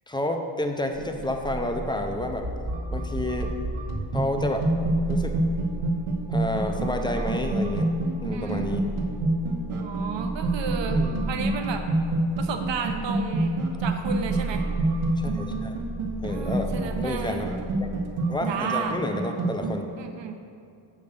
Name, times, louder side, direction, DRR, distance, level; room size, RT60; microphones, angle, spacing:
voice 1, 0.1-2.5 2.9-3.5 4.1-4.7 5.1-5.3 6.3-7.9 8.2-8.8 10.9-11.2 15.2-15.7 16.2-17.5 17.8-17.9 18.3-19.9, left 1 dB, 10° left, 4 dB, 0.4 m, -30 dB
sound 1, 0.9-18.0, right 2 dB, 5° right, 0.9 m, -36 dB
sound 2, 1.0-19.8, right 2 dB, 80° right, 1.3 m, -28 dB
voice 2, 8.3-8.8 9.8-11.9 12.4-14.6 16.2-17.5 18.5-19.0 20.0-20.4, right 5 dB, 60° right, 6 dB, 0.9 m, -33 dB
7.8 x 5.4 x 6.6 m, 2.5 s
wide cardioid pair, 175°, 49 cm